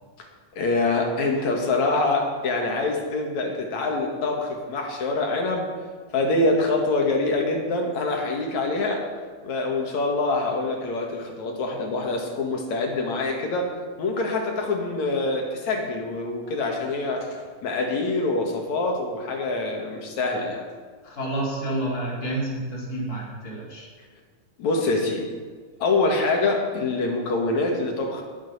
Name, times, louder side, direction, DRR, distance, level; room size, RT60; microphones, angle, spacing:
voice 1, 0.6-5.7 6.1-9.0 9.4-13.7 14.0-20.6 24.6-25.2 25.8-28.2, left 2 dB, 60° left, 1 dB, 3.1 m, -25 dB
voice 2, 21.0-23.9, right 1 dB, 25° left, -5 dB, 4.6 m, -29 dB
20.0 x 9.0 x 5.6 m, 1.5 s
omnidirectional pair, 3.7 m